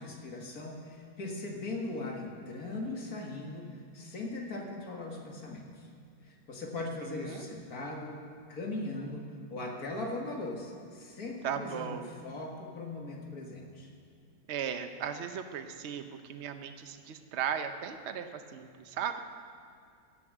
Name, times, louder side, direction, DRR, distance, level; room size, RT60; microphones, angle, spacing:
voice 1, 0.0-5.9 6.2-8.2 8.5-9.2 9.5-13.9, left 2 dB, 50° left, 0 dB, 2.2 m, -39 dB
voice 2, 7.0-7.5 11.4-12.1 14.5-19.2, right 8 dB, 60° right, 8 dB, 0.7 m, -37 dB
15.0 x 7.4 x 7.9 m, 2.3 s
omnidirectional pair, 2.1 m